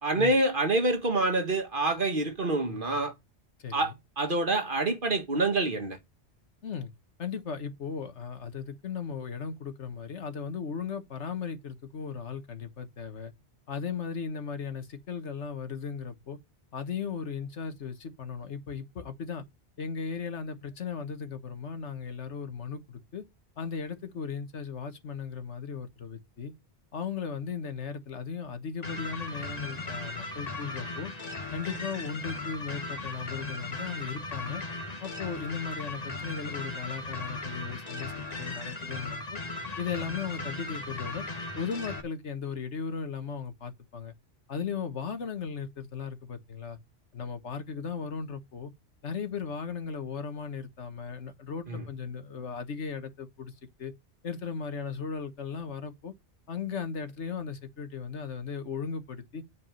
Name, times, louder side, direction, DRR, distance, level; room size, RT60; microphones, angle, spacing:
voice 1, 0.0-3.1 3.7-6.0 51.7-51.8, right 2 dB, 50° right, 1.9 m, -27 dB
voice 2, 3.6-4.0 6.6-6.9 7.2-13.3 13.7-16.4 16.7-19.4 19.8-23.2 23.6-26.5 26.9-31.1 31.5-34.6 35.0-39.4 39.8-41.2 41.6-44.1 44.5-46.8 47.1-48.7 49.0-53.5 53.8-53.9 54.2-56.1 56.5-59.4, left 6 dB, 85° left, 1.6 m, -37 dB
sound 1, 28.8-42.0, left 2 dB, 35° left, 1.5 m, -37 dB
8.4 x 4.8 x 7.5 m
omnidirectional pair, 1.2 m